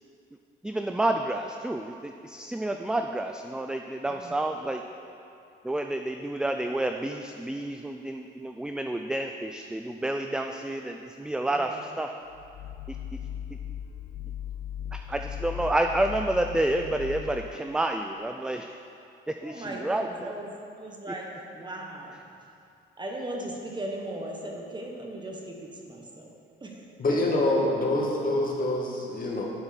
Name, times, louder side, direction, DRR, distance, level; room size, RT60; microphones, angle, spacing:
voice 1, 0.6-4.8 5.6-12.1 12.9-13.0 14.9-18.7 19.4-20.3, right 1 dB, 5° right, 5 dB, 0.3 m, -29 dB
voice 2, 11.5-12.0 19.4-22.2 23.0-26.3 26.6-27.7, right 1 dB, 20° right, 0 dB, 1.2 m, -38 dB
sound 1, 12.3-17.7, left 10 dB, 70° left, 0.4 m, -38 dB
voice 3, 27.0-29.4, left 1 dB, 45° left, -2 dB, 1.7 m, -26 dB
11.0 x 4.5 x 5.2 m, 2.6 s
cardioid pair, 90°, 20 cm